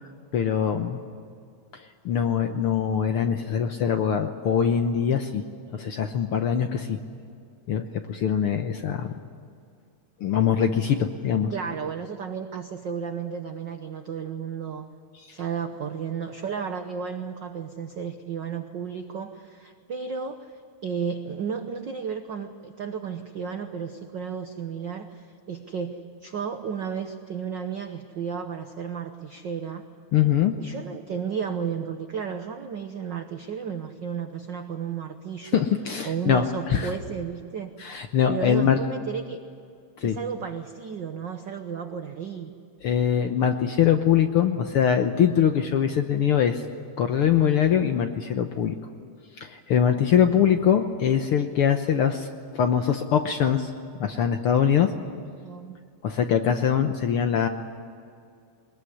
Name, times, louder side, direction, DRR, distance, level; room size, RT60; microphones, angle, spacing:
voice 1, 0.0-1.0 1.7-5.4 5.7-7.0 7.7-9.1 10.2-11.5 30.1-30.5 35.5-36.9 37.8-38.8 40.0-40.2 42.8-46.6 47.0-48.8 49.4-52.3 52.5-53.7 54.0-54.9 56.0-57.5, left 8 dB, 65° left, 7 dB, 1.4 m, -23 dB
voice 2, 11.5-14.9 15.3-20.5 20.8-29.8 30.6-35.6 36.0-37.7 38.3-39.4 40.0-42.5 55.4-55.7, right 6 dB, 70° right, 7 dB, 1.0 m, -33 dB
22.0 x 20.5 x 9.9 m, 2.3 s
omnidirectional pair, 3.5 m